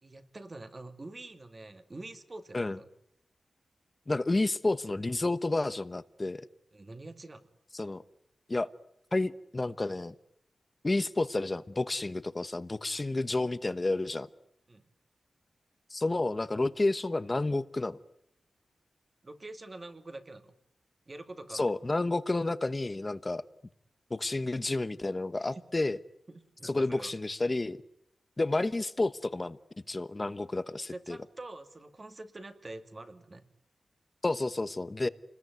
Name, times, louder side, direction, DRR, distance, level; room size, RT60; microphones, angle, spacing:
voice 1, 0.0-2.8 6.7-7.5 14.7-14.8 19.2-20.5 21.1-21.7 25.5-25.6 26.3-27.1 30.9-33.5, right 2 dB, 30° right, 8 dB, 2.4 m, -45 dB
voice 2, 4.1-6.4 7.7-8.0 8.5-8.7 9.1-10.1 10.8-14.3 15.9-18.0 21.5-23.4 24.1-26.0 26.6-27.8 28.4-29.6 29.9-31.2 34.2-35.1, left 2 dB, 25° left, 14 dB, 1.1 m, -30 dB
29.0 x 21.0 x 9.5 m, 0.77 s
wide cardioid pair, 115°, 0 cm